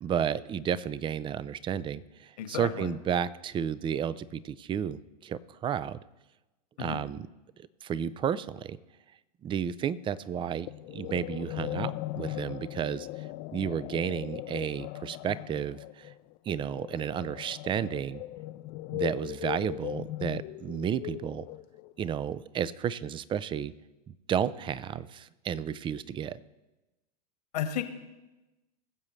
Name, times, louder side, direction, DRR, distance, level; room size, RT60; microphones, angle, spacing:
voice 1, 0.0-6.0 6.8-7.3 7.8-8.8 9.4-13.1 13.5-16.1 16.5-18.2 18.9-21.4 22.0-23.7 24.3-26.4, right 8 dB, 25° right, 17 dB, 0.5 m, -32 dB
voice 2, 2.4-2.9 6.8-7.0 27.5-27.8, left 9 dB, 75° left, 7 dB, 1.6 m, -33 dB
sound 1, 10.7-22.0, left 16 dB, 45° left, 0.5 m, -39 dB
21.5 x 7.4 x 3.2 m, 1.1 s
hypercardioid pair, 100°, 21 cm